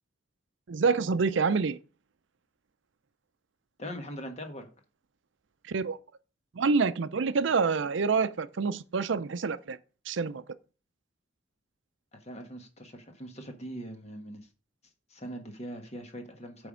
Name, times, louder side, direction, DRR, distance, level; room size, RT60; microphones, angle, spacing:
voice 1, 0.7-1.8 5.6-6.0 6.5-9.8 10.1-10.4, right 4 dB, 70° right, 0.5 m, -27 dB
voice 2, 3.8-4.7 12.1-14.5 15.1-16.7, equal, 35° left, 1.4 m, -41 dB
9.2 x 3.5 x 6.2 m
head